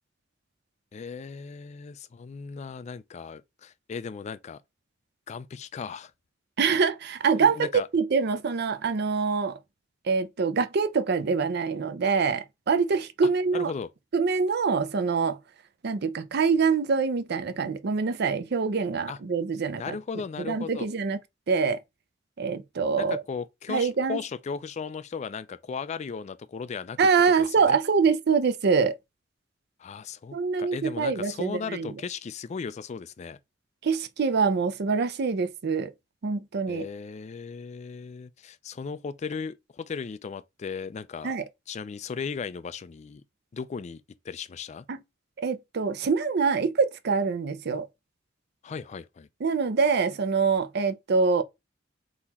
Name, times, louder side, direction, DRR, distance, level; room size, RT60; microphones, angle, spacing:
voice 1, 0.9-4.6 5.3-6.1 7.4-7.9 13.5-13.9 19.1-19.2 19.8-20.9 23.0-27.0 27.4-27.8 29.8-33.4 36.7-41.4 41.7-43.2 43.5-44.9 48.6-49.3, left 5 dB, 35° left, 0.3 m, -36 dB
voice 2, 6.6-9.6 10.1-13.7 14.1-15.4 15.8-20.0 20.5-21.2 21.5-21.8 22.4-23.2 23.7-24.2 27.0-28.9 30.3-31.9 33.8-35.9 36.2-36.9 41.2-41.4 44.9-45.0 45.4-47.9 49.4-51.4, right 5 dB, 55° right, 0.5 m, -25 dB
4.0 x 2.8 x 4.1 m
head